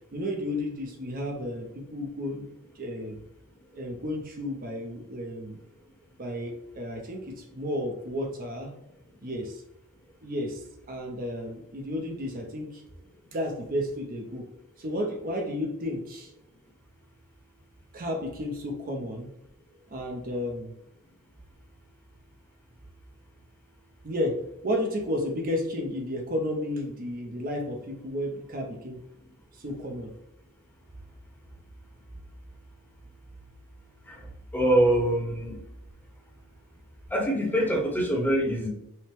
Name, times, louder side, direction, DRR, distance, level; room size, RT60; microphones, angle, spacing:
voice 1, 0.1-2.5 2.7-3.2 3.7-5.6 6.2-8.7 9.2-9.6 10.2-12.8 13.3-14.5 14.8-16.3 17.9-19.3 19.9-20.7 24.0-29.0 29.6-30.1, left 1 dB, 40° right, 1 dB, 0.6 m, -32 dB
voice 2, 34.5-35.5 37.1-38.7, right 1 dB, 10° left, -2 dB, 1.0 m, -24 dB
5.5 x 2.1 x 3.4 m, 0.85 s
head